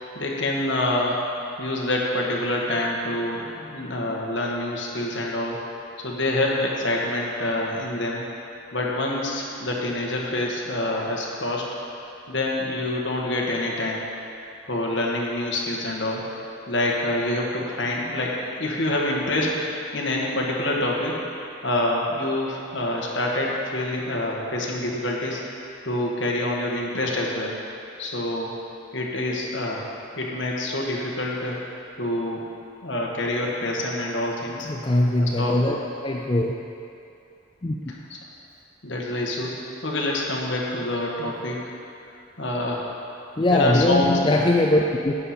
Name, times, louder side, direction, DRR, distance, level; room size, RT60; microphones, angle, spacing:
voice 1, 0.1-1.2 1.6-5.6 6.0-8.2 8.7-11.7 12.3-14.0 14.7-16.2 16.7-19.6 19.9-21.2 21.6-25.4 25.8-27.5 28.0-28.5 28.9-29.9 30.2-31.6 32.0-32.4 32.8-34.7 35.2-35.7 38.8-39.5 39.8-41.6 42.4-42.9 43.5-44.1, left 1 dB, 60° left, -2 dB, 1.5 m, -26 dB
voice 2, 34.6-35.8 36.0-36.5 37.6-37.8 43.4-45.1, left 1 dB, 25° left, -1 dB, 0.5 m, -21 dB
12.0 x 9.2 x 4.3 m, 2.7 s
head